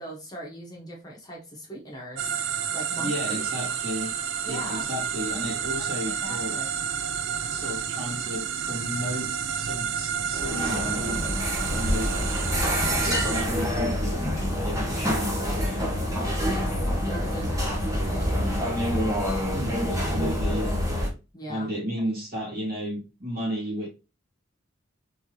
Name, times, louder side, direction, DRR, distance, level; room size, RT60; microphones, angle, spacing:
voice 1, 0.0-2.4 2.7-3.8 4.4-4.9 6.0-6.7 16.4-16.7 17.0-18.4 21.3-21.7 22.3-22.4, equal, 20° left, 1.2 m, -40 dB
sound 1, 2.2-13.4, right 7 dB, 65° right, 0.5 m, -30 dB
voice 2, 3.0-4.1 4.4-6.6 7.5-11.2 11.7-12.2 12.9-15.8 19.5-20.8 21.5-23.9, equal, 45° right, 2.3 m, -33 dB
sound 2, 10.3-21.1, equal, 15° right, 1.1 m, -26 dB
4.4 x 3.6 x 3.1 m
head